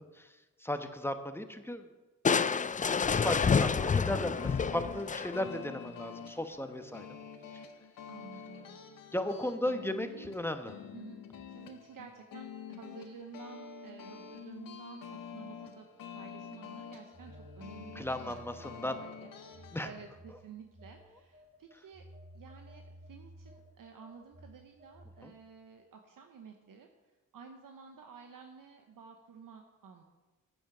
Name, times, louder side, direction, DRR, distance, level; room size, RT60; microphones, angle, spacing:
voice 1, 0.0-1.9 2.3-7.1 7.5-7.6 9.1-10.7 17.9-19.0 19.7-19.9 25.2-25.3, left 1 dB, 5° left, 8 dB, 1.1 m, -36 dB
Crushing, 2.2-5.6, left 6 dB, 25° left, 0.4 m, -28 dB
sound 1, 4.4-19.9, left 7 dB, 75° left, 1.0 m, -47 dB
voice 2, 8.1-8.8 9.6-9.7 10.0-10.3 10.9-15.9 16.1-22.0 22.3-30.0, right 6 dB, 70° right, 4 dB, 0.9 m, -52 dB
Telephone, 17.1-19.1 19.5-25.3, equal, 30° right, 1.4 m, -54 dB
8.8 x 7.9 x 6.0 m, 1.2 s
supercardioid pair, 45°, 34 cm